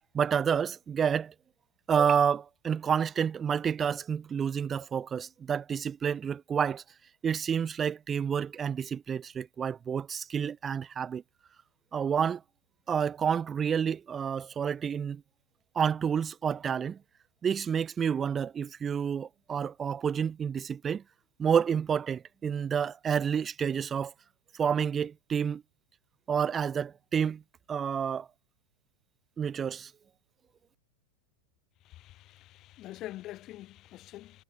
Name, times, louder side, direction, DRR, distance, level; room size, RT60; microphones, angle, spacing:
voice 1, 0.1-1.3 1.9-6.8 7.2-11.2 11.9-12.4 12.9-15.2 15.8-17.0 17.4-21.0 21.4-24.1 24.6-25.6 26.3-27.4 27.7-28.3 29.4-29.9, right 7 dB, 20° right, 0.3 m, -29 dB
voice 2, 31.8-34.4, left 15 dB, 35° left, 3.4 m, -45 dB
figure-of-eight pair, 90°, 0 cm